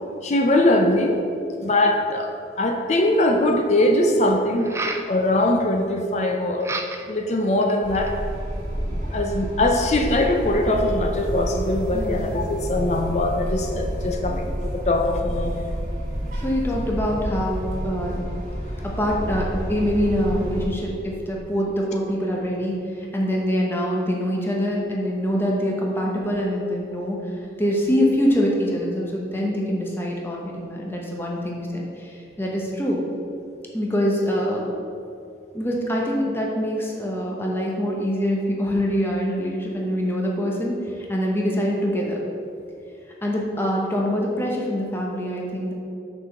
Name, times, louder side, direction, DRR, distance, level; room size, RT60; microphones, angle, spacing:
voice 1, 0.2-1.2 1.6-4.7 5.1-6.7 7.1-8.1 8.9-15.8, left 1 dB, 40° left, 3 dB, 0.5 m, -21 dB
sound 1, 2.9-3.0 4.6-5.1 6.6-7.2 7.6-8.2, right 3 dB, 15° right, 0.3 m, -31 dB
sound 2, 7.8-20.7, equal, 45° right, 1.7 m, -29 dB
voice 2, 11.9-12.2 16.4-18.3 18.8-33.0 33.7-34.6 35.5-42.2 43.2-45.7, equal, 10° left, -2 dB, 0.9 m, -24 dB
6.0 x 4.9 x 6.6 m, 2.6 s
head